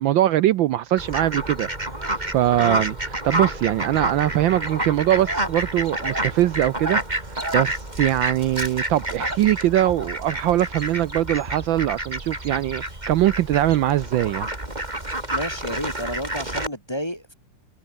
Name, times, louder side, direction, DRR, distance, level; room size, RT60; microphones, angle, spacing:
voice 1, 0.0-1.7 2.3-14.5, right 13 dB, 70° right, 1.3 m, -22 dB
Fowl, 1.0-16.7, right 1 dB, 20° right, 5.3 m, -29 dB
voice 2, 15.3-17.3, equal, 15° left, 1.8 m, -31 dB
omnidirectional pair, 2.4 m